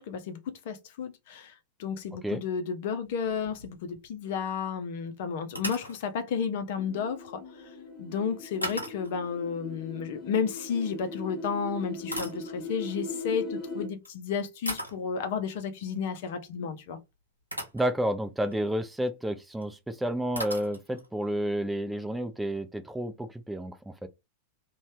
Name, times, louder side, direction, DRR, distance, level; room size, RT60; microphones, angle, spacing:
voice 1, 0.0-1.5 1.8-7.4 8.0-17.0, left 6 dB, 50° left, 0.6 m, -32 dB
sound 1, 3.0-4.1 4.4-4.6 5.5-6.0 8.6-9.3 11.0-11.2 11.8-13.0 13.9-14.1 14.6-15.1 16.9-17.0 17.5-17.9 18.4-18.7 19.6-19.7 19.9-20.0 20.3-21.1, right 1 dB, 90° right, 0.8 m, -38 dB
sound 2, 6.8-13.9, left 3 dB, 20° left, 1.1 m, -39 dB
voice 2, 17.7-24.1, right 1 dB, 5° right, 0.4 m, -30 dB
2.6 x 2.2 x 3.2 m
figure-of-eight pair, 90°, 0 cm